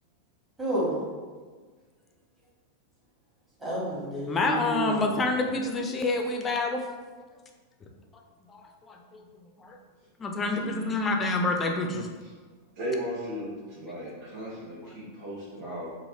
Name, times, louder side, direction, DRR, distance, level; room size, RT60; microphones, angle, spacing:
voice 1, 0.6-1.0 3.6-5.2, right 1 dB, 20° right, -7 dB, 1.2 m, -30 dB
voice 2, 4.3-6.8 7.8-7.9 8.5-8.6 8.9-9.2 9.6-9.8 10.2-12.1 15.6-15.8, left 3 dB, 20° left, 2 dB, 0.4 m, -28 dB
voice 3, 10.3-10.9 12.8-16.0, right 1 dB, 45° right, -8 dB, 0.8 m, -36 dB
3.1 x 2.5 x 2.7 m, 1.5 s
figure-of-eight pair, 90°, 0 cm